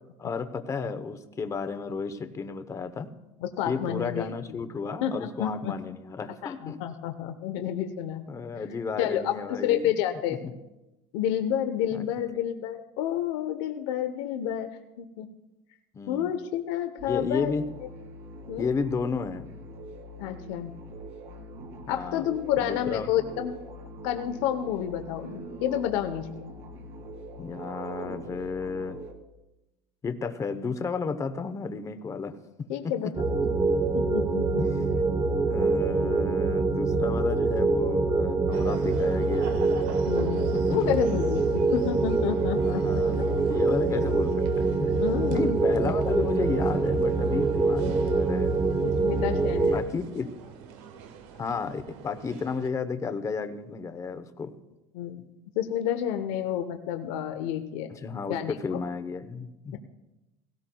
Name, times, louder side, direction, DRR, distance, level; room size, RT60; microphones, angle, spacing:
voice 1, 0.2-3.1 3.7-6.8 8.3-9.9 11.9-12.0 15.9-16.3 17.1-17.6 18.6-19.5 21.9-22.2 22.6-23.1 27.4-29.0 30.0-32.4 33.4-33.5 34.6-34.7 35.4-39.6 40.5-40.9 42.6-44.9 45.3-48.6 49.7-50.3 51.4-54.5 57.9-59.8, left 4 dB, 20° left, 10 dB, 0.8 m, -32 dB
voice 2, 3.4-4.3 5.0-5.7 6.4-8.2 9.0-10.4 11.1-14.7 15.0-15.3 16.1-17.5 18.5-18.7 20.2-20.7 21.9-23.5 24.0-26.5 32.7-33.1 33.9-34.8 40.1-42.8 43.2-43.3 45.0-45.6 48.8-49.8 54.9-55.2 55.6-57.9 58.3-58.8 59.7-59.8, left 10 dB, 90° left, 7 dB, 0.9 m, -30 dB
sound 1, 17.0-29.1, right 1 dB, 50° right, 1.7 m, -43 dB
sound 2, 33.2-49.8, right 3 dB, 25° right, 0.9 m, -25 dB
sound 3, 38.5-52.7, right 6 dB, 85° right, 1.2 m, -44 dB
17.5 x 17.0 x 2.3 m, 0.99 s
cardioid pair, 150°, 14 cm